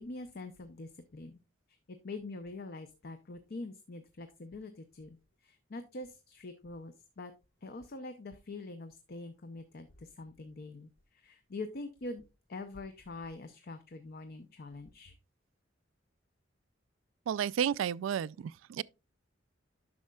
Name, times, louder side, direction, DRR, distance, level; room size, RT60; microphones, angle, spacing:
voice 1, 0.0-1.4 1.9-5.2 5.4-7.3 7.6-15.1, left 2 dB, 50° left, 0.6 m, -44 dB
voice 2, 17.3-18.8, right 8 dB, 85° right, 0.3 m, -32 dB
10.5 x 6.4 x 2.3 m
head